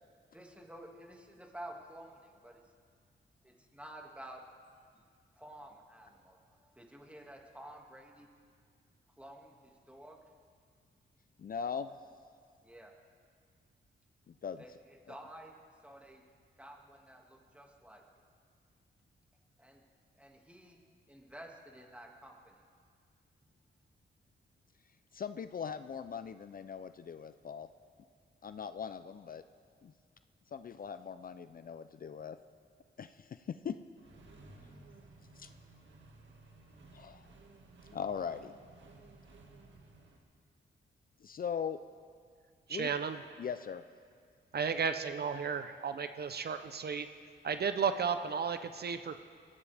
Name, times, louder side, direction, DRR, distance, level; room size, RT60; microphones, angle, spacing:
voice 1, 0.3-2.6 3.4-4.4 4.9-5.0 5.3-8.3 9.2-10.2 12.6-12.9 14.6-15.5 15.8-16.2 16.6-18.0 19.6-19.8 20.1-20.8 21.1-22.6, right 1 dB, 5° right, 0 dB, 2.0 m, -51 dB
voice 2, 11.4-12.0 14.3-14.6 25.1-27.7 28.4-29.4 29.8-29.9 30.5-32.4 33.0-33.8 35.4-35.5 36.9-37.3 37.9-38.5 41.2-41.8 42.7-42.9 43.4-43.8, left 7 dB, 45° left, 11 dB, 0.5 m, -40 dB
Accelerating revving vroom, 34.0-40.2, right 2 dB, 70° right, 1.9 m, -57 dB
voice 3, 42.7-43.2 44.5-47.1 47.4-49.2, right 6 dB, 55° right, 9 dB, 0.7 m, -34 dB
22.0 x 15.0 x 3.5 m, 2.1 s
cardioid pair, 90°, 20 cm